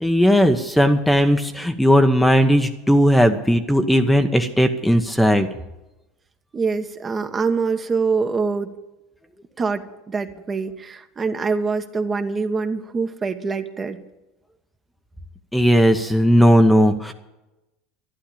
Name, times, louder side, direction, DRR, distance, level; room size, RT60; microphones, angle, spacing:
voice 1, 0.0-5.5 15.5-17.1, equal, 5° left, 6 dB, 1.0 m, -17 dB
voice 2, 6.5-8.7 9.6-14.0, right 4 dB, 25° right, 7 dB, 1.3 m, -24 dB
11.5 x 11.5 x 8.6 m, 0.99 s
hypercardioid pair, 85°, 0 cm